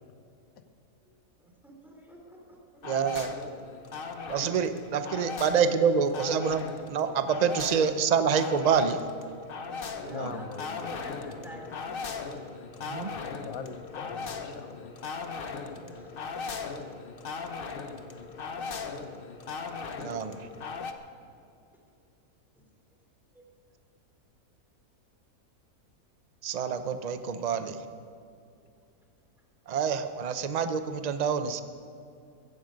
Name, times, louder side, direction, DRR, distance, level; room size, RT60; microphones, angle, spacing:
voice 1, 1.4-2.8 4.4-4.7 5.5-5.6 9.9-12.6 15.7-16.1 21.2-21.5 23.3-23.4 28.4-28.7, equal, ahead, -1 dB, 3.0 m, -48 dB
sound 1, 2.8-20.9, left 5 dB, 45° left, 0.8 m, -38 dB
voice 2, 2.8-3.3 4.3-6.6 6.9-9.0 10.1-10.3 12.9-13.1 20.0-20.4 26.4-27.8 29.7-31.6, right 6 dB, 45° right, 10 dB, 0.5 m, -27 dB
voice 3, 10.1-11.0 12.8-14.9, left 6 dB, 65° left, 9 dB, 1.3 m, -42 dB
15.5 x 14.5 x 5.2 m, 2.5 s
omnidirectional pair, 1.7 m